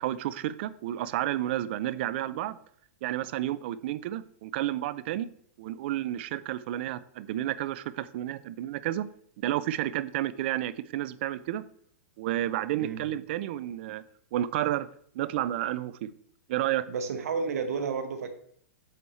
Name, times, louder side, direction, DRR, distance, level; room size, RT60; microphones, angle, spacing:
voice 1, 0.0-2.6 3.0-5.3 5.6-9.1 9.4-11.6 12.2-14.0 14.3-14.9 15.1-16.1 16.5-16.9, right 13 dB, 45° right, 17 dB, 0.4 m, -31 dB
voice 2, 16.9-18.3, right 5 dB, 85° right, 7 dB, 1.2 m, -31 dB
8.2 x 4.3 x 4.2 m, 0.64 s
hypercardioid pair, 155°, 8 cm